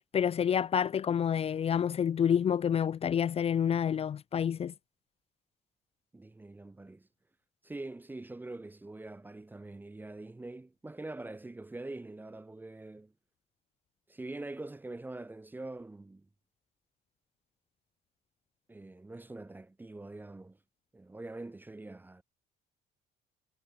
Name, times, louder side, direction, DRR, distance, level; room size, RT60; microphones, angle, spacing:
voice 1, 0.1-4.7, left 8 dB, 35° left, 0.5 m, -28 dB
voice 2, 6.1-7.1 7.6-13.1 14.1-16.3 18.7-20.6 20.9-22.2, right 2 dB, 10° right, 0.6 m, -44 dB
cardioid pair, 110°, 17 cm